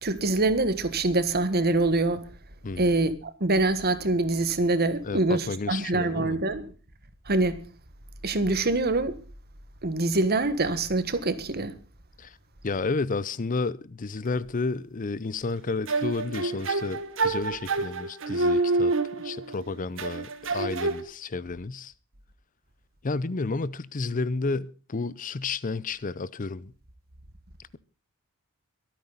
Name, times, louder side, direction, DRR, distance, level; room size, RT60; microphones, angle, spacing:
voice 1, 0.0-2.2 2.8-6.7 7.3-7.6 8.2-9.2 9.8-11.8, right 2 dB, 45° right, 1.5 m, -25 dB
voice 2, 5.0-6.4 12.2-12.4 12.6-18.9 19.2-21.9 23.0-26.7, left 3 dB, 40° left, 0.6 m, -31 dB
sound 1, 15.9-19.6 20.0-21.0, right 3 dB, 65° right, 1.7 m, -27 dB
24.0 x 9.2 x 4.0 m
head